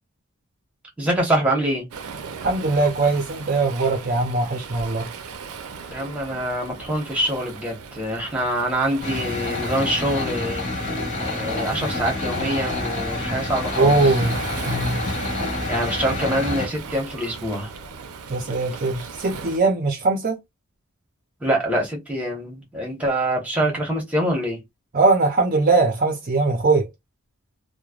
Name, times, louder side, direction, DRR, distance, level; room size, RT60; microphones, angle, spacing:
voice 1, 1.0-1.9 5.9-14.0 15.7-17.7 21.4-24.6, right 1 dB, 5° right, 1.0 m, -25 dB
Waves surf, 1.9-19.6, right 5 dB, 90° right, 0.6 m, -38 dB
voice 2, 2.4-5.1 13.8-14.4 14.6-15.0 18.3-20.4 24.9-26.9, right 3 dB, 40° right, 0.5 m, -21 dB
sound 1, 9.0-16.7, left 2 dB, 35° left, 1.3 m, -28 dB
3.1 x 2.2 x 2.4 m
head